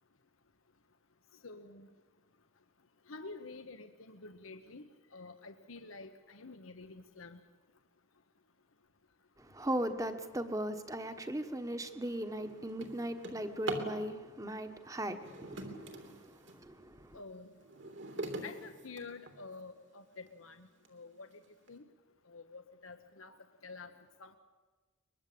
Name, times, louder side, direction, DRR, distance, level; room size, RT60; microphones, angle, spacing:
voice 1, 1.4-1.9 3.1-4.8 5.1-7.4 17.1-17.5 18.4-20.6 20.9-21.3 21.7-21.8 22.3-23.3 23.6-23.9 24.2-24.4, left 3 dB, 85° left, 1.2 m, -48 dB
voice 2, 9.5-15.6 16.7-16.8, right 1 dB, 15° right, 1.3 m, -37 dB
Drawer open or close, 11.3-11.5 12.0-14.0 15.0-16.6 17.2-19.6 20.3-20.4 20.8-20.9 21.3-21.7, right 2 dB, 60° right, 3.3 m, -43 dB
23.0 x 22.0 x 8.6 m
head